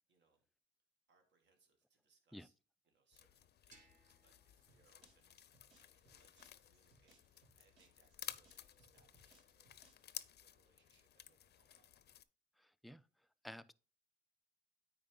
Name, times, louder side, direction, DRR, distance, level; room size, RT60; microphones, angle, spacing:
voice 1, 0.1-0.5 1.1-2.5 2.8-9.9 10.2-11.9, right 4 dB, 65° right, 2.1 m, -77 dB
sound 1, 3.1-12.2, left 10 dB, 55° left, 0.5 m, -55 dB
sound 2, 3.7-6.5, right 2 dB, 40° right, 2.4 m, -71 dB
sound 3, 4.7-10.2, right 3 dB, 85° right, 2.6 m, -72 dB
voice 2, 12.6-13.0 13.4-13.7, equal, ahead, 0.3 m, -52 dB
9.2 x 4.4 x 3.9 m
cardioid pair, 90°, 20 cm